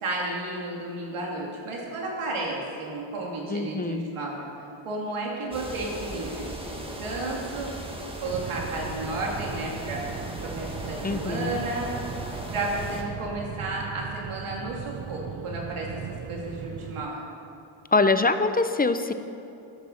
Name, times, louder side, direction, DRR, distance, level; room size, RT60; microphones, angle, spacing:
voice 1, 0.0-4.4 4.8-7.7 8.2-10.1 10.4-11.9 12.5-15.9 16.3-17.2, right 2 dB, 85° right, -2 dB, 2.7 m, -32 dB
voice 2, 3.5-4.0 11.0-11.6 17.9-19.1, left 3 dB, 20° left, 10 dB, 0.6 m, -24 dB
sound 1, 5.5-13.0, right 1 dB, 10° right, 1.7 m, -37 dB
sound 2, 8.2-17.1, right 9 dB, 30° right, 0.3 m, -38 dB
13.0 x 6.7 x 6.5 m, 2.8 s
cardioid pair, 80°, 49 cm